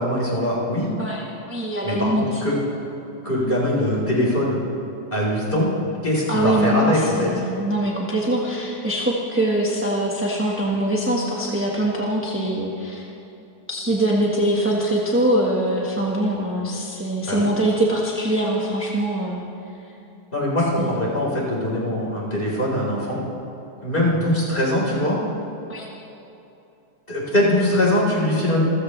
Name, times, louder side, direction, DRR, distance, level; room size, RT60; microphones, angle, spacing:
voice 1, 0.0-0.9 1.8-2.5 3.2-4.6 5.1-5.7 6.0-7.3 17.3-17.5 20.3-23.2 23.8-25.2 27.1-28.6, left 1 dB, 30° left, -5 dB, 4.6 m, -22 dB
voice 2, 1.0-2.4 6.3-13.0 13.7-19.4 20.8-21.1 25.7-25.9, right 1 dB, 10° right, -4 dB, 1.4 m, -23 dB
28.0 x 15.5 x 3.3 m, 2.9 s
omnidirectional pair, 1.8 m